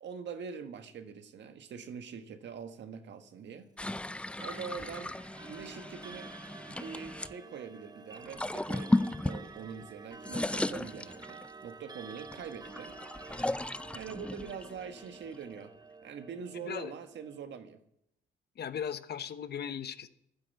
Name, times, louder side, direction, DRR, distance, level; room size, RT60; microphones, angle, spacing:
voice 1, 0.0-4.0 4.4-5.2 5.5-6.3 6.7-13.0 13.9-15.7 16.0-17.8, right 6 dB, 65° right, 8 dB, 1.5 m, -44 dB
sound 1, 3.8-7.3 8.2-9.9 10.1-11.6 12.2-15.6, left 1 dB, 5° left, 0.4 m, -35 dB
Clock, 4.3-17.4, right 4 dB, 20° right, 0.8 m, -50 dB
voice 2, 16.6-16.9 18.6-20.1, left 8 dB, 55° left, 12 dB, 1.0 m, -37 dB
11.5 x 9.8 x 8.2 m, 0.77 s
cardioid pair, 90°, 20 cm